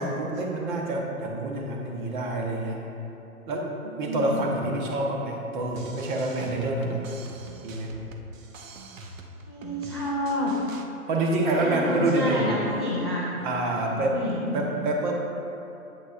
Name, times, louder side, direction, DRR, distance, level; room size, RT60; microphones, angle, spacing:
voice 1, 0.0-2.8 3.5-3.7 4.0-7.0 7.6-7.9 11.1-12.5 13.4-14.2 14.5-15.1, right 2 dB, 35° right, 0 dB, 1.1 m, -27 dB
voice 2, 3.8-4.5 9.5-10.6 11.4-13.5 13.7-14.6, left 1 dB, 20° left, -6 dB, 0.3 m, -30 dB
sound 1, 5.7-10.9, right 3 dB, 60° right, 0.8 m, -44 dB
8.7 x 8.0 x 2.5 m, 2.9 s
figure-of-eight pair, 125°, 44 cm